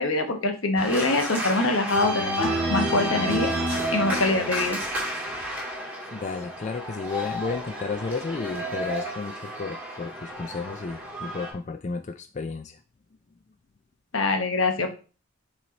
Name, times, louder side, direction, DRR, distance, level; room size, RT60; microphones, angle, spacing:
voice 1, 0.0-3.5 3.9-4.8 14.1-14.9, left 2 dB, 85° left, 5 dB, 1.0 m, -24 dB
Organ, 0.8-11.5, right 1 dB, 10° right, 2.0 m, -30 dB
voice 2, 6.1-12.8, left 4 dB, 35° left, 7 dB, 0.3 m, -32 dB
7.6 x 3.2 x 4.0 m, 0.36 s
head